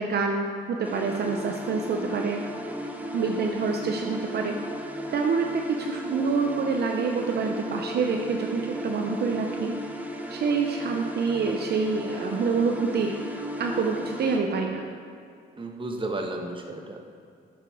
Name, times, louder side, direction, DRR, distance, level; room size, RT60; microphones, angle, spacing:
voice 1, 0.0-2.4 3.1-4.5 5.1-9.7 10.3-13.1 13.6-14.9, right 5 dB, 55° right, 2 dB, 0.8 m, -27 dB
sound 1, 0.8-14.4, equal, 10° right, 1.0 m, -35 dB
voice 2, 15.6-17.0, right 2 dB, 25° right, 2 dB, 1.3 m, -33 dB
10.0 x 6.8 x 4.8 m, 2.3 s
cardioid pair, 90°, 20 cm